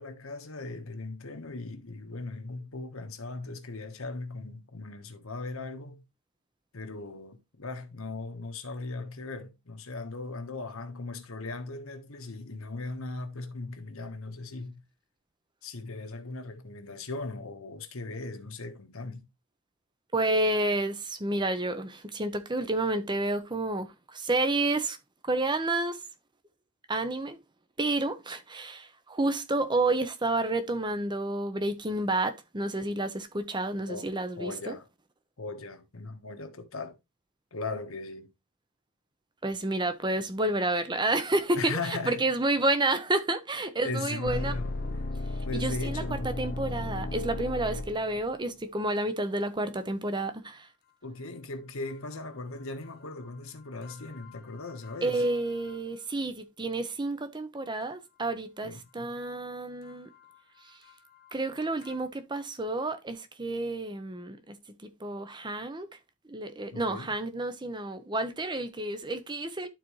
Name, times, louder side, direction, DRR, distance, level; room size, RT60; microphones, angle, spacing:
voice 1, 0.0-6.0 6.7-14.9 15.6-19.3 33.9-34.1 34.4-34.9 35.4-37.0 37.5-38.3 41.5-42.3 43.8-44.7 45.4-46.3 51.0-55.2 58.6-59.1 66.7-67.1, left 3 dB, 65° left, 1.3 m, -38 dB
voice 2, 20.1-25.0 25.2-26.0 26.9-27.4 27.8-34.7 39.4-44.6 44.9-45.0 45.5-50.7 55.0-60.1 60.6-60.8 61.3-65.9 66.3-69.7, right 2 dB, 20° right, 0.8 m, -30 dB
sound 1, 44.2-48.3 53.8-55.3 55.6-55.7 61.8-61.9, left 2 dB, 45° left, 0.8 m, -35 dB
12.0 x 4.3 x 3.1 m
head